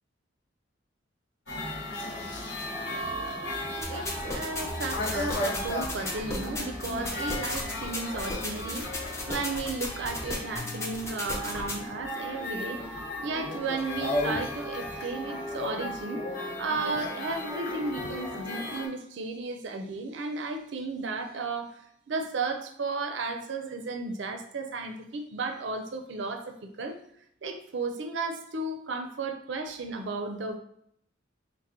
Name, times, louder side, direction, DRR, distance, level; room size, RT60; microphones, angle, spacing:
sound 1, 1.5-18.9, left 1 dB, 55° left, 1.1 m, -35 dB
sound 2, 3.8-11.8, left 1 dB, 15° left, 0.5 m, -36 dB
voice 1, 3.8-16.3 16.6-27.0 27.4-30.6, right 3 dB, 65° right, 5 dB, 0.4 m, -34 dB
3.5 x 2.1 x 4.2 m, 0.71 s
head